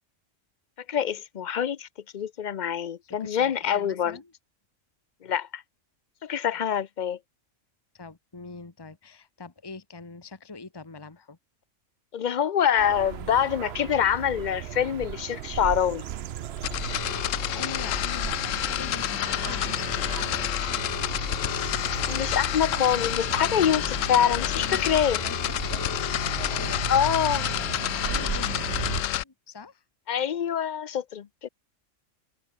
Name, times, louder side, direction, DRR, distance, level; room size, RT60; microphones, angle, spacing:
voice 1, 0.9-1.9 2.1-4.2 5.2-5.6 6.2-7.2 12.1-16.0 22.0-25.2 26.9-27.5 30.1-31.5, left 9 dB, 50° left, 0.6 m, -25 dB
voice 2, 3.2-4.3 7.9-11.4 17.5-21.4 24.2-25.0 25.2-28.7 29.2-29.8, left 4 dB, 20° left, 1.3 m, -43 dB
sound 1, 12.8-29.0, right 10 dB, 60° right, 0.8 m, -36 dB
sound 2, 16.6-29.2, left 13 dB, 85° left, 1.0 m, -29 dB
omnidirectional pair, 1.3 m